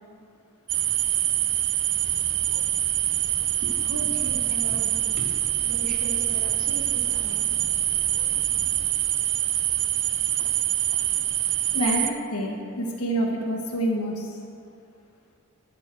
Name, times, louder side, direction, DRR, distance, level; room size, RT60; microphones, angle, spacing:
sound 1, 0.7-12.1, right 12 dB, 55° right, 0.5 m, -25 dB
sound 2, 2.0-8.9, right 1 dB, 35° right, 1.0 m, -45 dB
voice 1, 3.2-7.9, equal, 75° right, -2 dB, 2.1 m, -39 dB
voice 2, 11.7-14.3, equal, 75° left, 0 dB, 1.5 m, -27 dB
13.0 x 4.5 x 7.7 m, 2.5 s
head